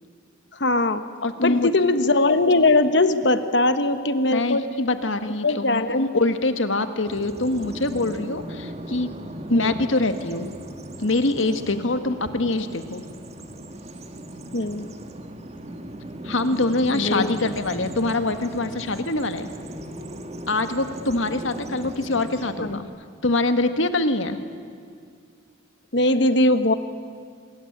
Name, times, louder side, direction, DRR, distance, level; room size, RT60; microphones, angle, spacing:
voice 1, 0.6-1.0 1.4-4.7 5.4-6.1 9.5-9.7 14.5-14.9 16.9-17.3 22.6-22.8 25.9-26.7, left 2 dB, 60° left, 10 dB, 1.2 m, -20 dB
voice 2, 1.2-1.7 4.3-9.1 9.5-10.5 11.0-13.0 16.2-19.5 20.5-22.9 23.2-24.4, left 2 dB, 85° left, 9 dB, 1.7 m, -24 dB
Bird vocalization bird call bird song, 7.1-22.8, right 1 dB, 35° right, 1.5 m, -37 dB
26.0 x 21.5 x 9.9 m, 2.1 s
head